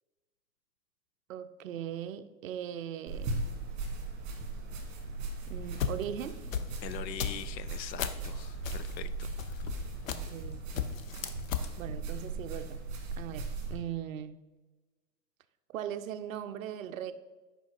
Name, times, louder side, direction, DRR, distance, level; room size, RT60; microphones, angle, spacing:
voice 1, 1.3-3.4 5.5-6.4 10.0-11.0 11.8-12.8 13.2-14.4 15.7-17.1, right 10 dB, 55° right, 0.6 m, -39 dB
sound 1, 3.1-13.8, right 3 dB, 30° right, 1.8 m, -38 dB
sound 2, 5.5-8.3 8.6-10.5 10.7-11.7, left 8 dB, 55° left, 0.7 m, -35 dB
voice 2, 6.8-9.6, left 10 dB, 90° left, 0.6 m, -43 dB
6.1 x 5.2 x 4.6 m
hypercardioid pair, 135°, 50 cm